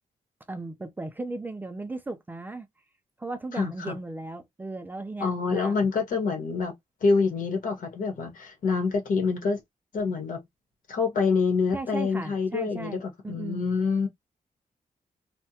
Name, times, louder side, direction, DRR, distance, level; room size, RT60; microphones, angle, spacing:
voice 1, 0.5-2.7 3.2-5.8 11.7-13.7, right 2 dB, 15° right, 0.4 m, -36 dB
voice 2, 3.5-4.0 5.2-6.7 7.0-9.6 9.9-10.4 10.9-13.0 13.3-14.1, left 4 dB, 75° left, 1.3 m, -26 dB
3.3 x 2.1 x 2.7 m
wide cardioid pair, 170°, 14 cm